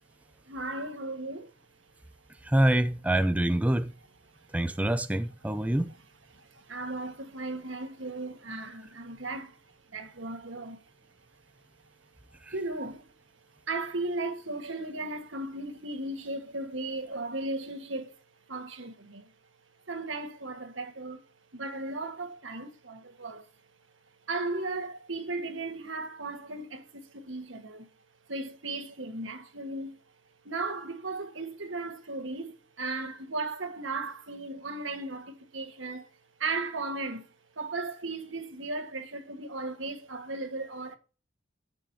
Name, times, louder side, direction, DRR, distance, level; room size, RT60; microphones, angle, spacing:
voice 1, 0.4-1.5 4.3-4.6 5.7-5.8 6.3-11.9 12.3-19.3 19.9-21.2 21.5-23.5 24.3-27.9 28.3-30.0 30.4-36.1 36.4-41.0, right 2 dB, 80° right, 1.6 m, -36 dB
voice 2, 2.4-3.9 4.5-5.9 12.4-12.5, right 1 dB, 5° right, 0.4 m, -26 dB
17.0 x 6.3 x 2.8 m
head